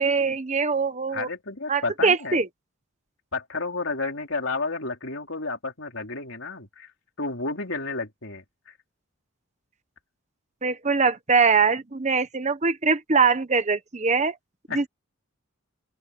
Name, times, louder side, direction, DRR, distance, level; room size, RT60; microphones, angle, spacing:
voice 1, 0.0-1.3 1.7-2.5 10.6-14.3 14.7-14.9, right 5 dB, 35° right, 1.1 m, -22 dB
voice 2, 1.1-2.4 3.3-6.9 7.2-8.7 14.7-14.9, left 3 dB, 60° left, 3.9 m, -31 dB
open air
head